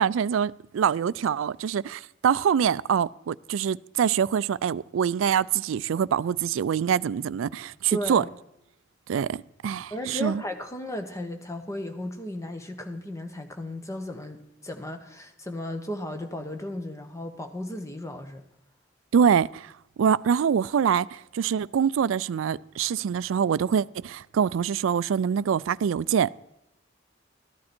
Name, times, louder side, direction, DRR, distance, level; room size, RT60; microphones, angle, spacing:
voice 1, 0.0-8.2 9.1-10.4 19.1-26.3, right 7 dB, 85° right, 0.3 m, -25 dB
voice 2, 7.9-8.3 9.9-18.4, left 1 dB, 15° left, 1.2 m, -35 dB
14.5 x 11.5 x 4.4 m
head